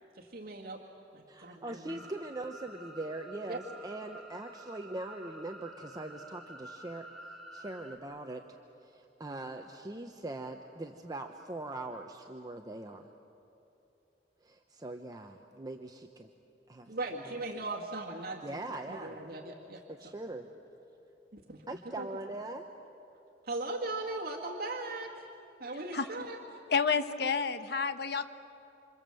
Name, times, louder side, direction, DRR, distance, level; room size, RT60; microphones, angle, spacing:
voice 1, 0.2-0.8 1.1-2.0 3.5-3.6 16.9-18.6 18.9-20.1 21.3-21.7 22.0-22.1 23.4-25.2 25.6-26.4, right 2 dB, 60° right, -1 dB, 2.0 m, -39 dB
voice 2, 1.3-7.0 7.5-8.4 8.8-13.1 14.4-16.3 16.7-16.9 17.2-17.4 18.4-19.1 19.9-20.5 21.7-22.6, right 2 dB, 20° right, 4 dB, 0.9 m, -41 dB
sound 1, 1.9-8.0, right 1 dB, ahead, 2.5 m, -50 dB
voice 3, 26.7-28.3, left 5 dB, 65° left, 9 dB, 1.1 m, -29 dB
27.5 x 26.5 x 7.7 m, 2.9 s
head